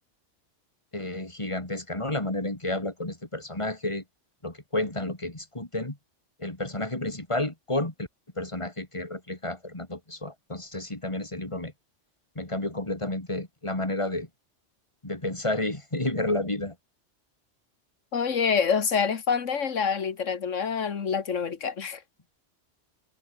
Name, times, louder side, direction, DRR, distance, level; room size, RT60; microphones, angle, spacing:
voice 1, 0.9-4.0 4.4-6.0 6.4-8.1 8.4-11.7 12.3-14.3 15.0-16.7, left 2 dB, 25° left, 3.4 m, -31 dB
voice 2, 18.1-22.0, left 6 dB, 85° left, 1.9 m, -26 dB
omnidirectional pair, 1.2 m